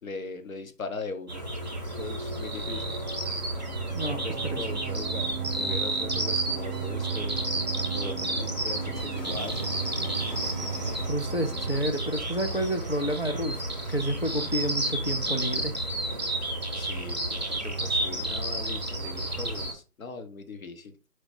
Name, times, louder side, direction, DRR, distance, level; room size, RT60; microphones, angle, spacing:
voice 1, 0.0-1.4 2.0-2.9 4.1-7.4 7.9-9.8 16.7-20.9, left 3 dB, 55° left, 0.9 m, -39 dB
sound 1, 1.3-19.7, right 2 dB, 25° right, 0.7 m, -31 dB
sound 2, 2.7-11.8, right 10 dB, 80° right, 0.6 m, -38 dB
voice 2, 3.9-4.6 11.0-13.6 13.9-15.7, right 1 dB, 40° left, 0.4 m, -30 dB
sound 3, 6.0-11.1, left 2 dB, 85° left, 1.6 m, -43 dB
4.8 x 2.2 x 4.1 m
figure-of-eight pair, 165°, 48 cm